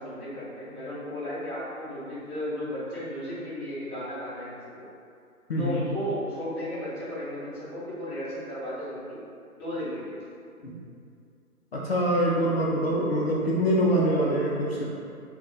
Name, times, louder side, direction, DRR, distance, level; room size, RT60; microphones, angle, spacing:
voice 1, 0.0-4.5 5.6-9.2 9.5-10.2, equal, 20° left, -14 dB, 0.9 m, -34 dB
voice 2, 5.5-5.8 10.6-10.7 11.7-14.8, equal, 45° left, -4 dB, 0.4 m, -24 dB
2.4 x 2.3 x 3.8 m, 2.4 s
figure-of-eight pair, 140°, 44 cm